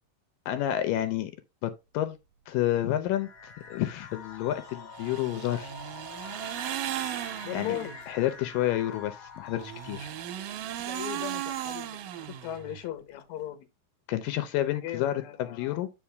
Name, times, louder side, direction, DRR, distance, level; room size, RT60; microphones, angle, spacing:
voice 1, 0.5-1.3 1.6-2.2 2.5-5.7 7.5-7.8 8.1-10.1 14.1-15.9, left 13 dB, 80° left, 2.4 m, -30 dB
sound 1, 3.0-10.6, left 5 dB, 45° left, 2.2 m, -46 dB
sound 2, 4.9-8.1 9.5-12.9, right 12 dB, 80° right, 2.4 m, -36 dB
voice 2, 7.4-8.0 10.8-13.7 14.7-15.8, left 12 dB, 65° left, 2.3 m, -38 dB
8.8 x 5.2 x 3.4 m
omnidirectional pair, 3.9 m